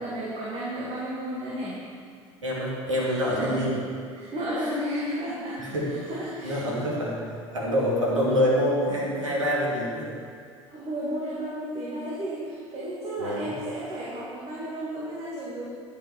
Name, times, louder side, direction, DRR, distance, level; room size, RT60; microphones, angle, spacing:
voice 1, 0.0-1.8 3.0-3.6 4.1-6.9 10.7-15.6, equal, 40° right, -6 dB, 2.6 m, -33 dB
voice 2, 2.4-3.8 4.6-4.7 5.6-5.9 6.4-7.2 7.5-10.1 13.2-13.5, equal, 85° right, -4 dB, 2.7 m, -26 dB
12.0 x 6.9 x 6.0 m, 2.1 s
hypercardioid pair, 70°, 16 cm